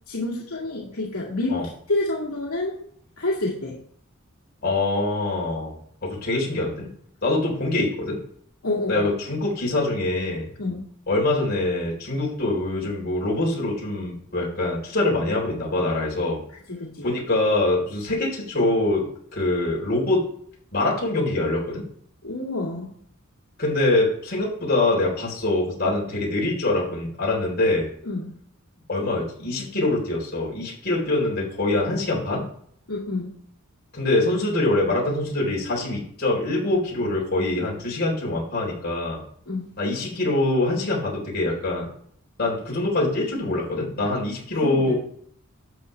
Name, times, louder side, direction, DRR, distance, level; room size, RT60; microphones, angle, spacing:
voice 1, 0.1-1.6 1.9-2.8 3.2-3.8 8.6-9.1 10.6-10.9 16.7-17.1 22.2-22.9 28.1-28.3 32.9-33.3 39.5-39.7 44.6-44.9, left 2 dB, 80° left, -5 dB, 2.3 m, -28 dB
voice 2, 4.6-6.9 7.2-8.2 8.9-10.5 11.1-16.4 17.0-19.0 19.3-20.2 20.7-21.8 23.6-27.9 28.9-32.4 33.9-39.2 39.8-41.9 42.4-44.9, left 2 dB, 45° left, -3 dB, 4.0 m, -24 dB
12.5 x 7.6 x 3.4 m, 0.64 s
head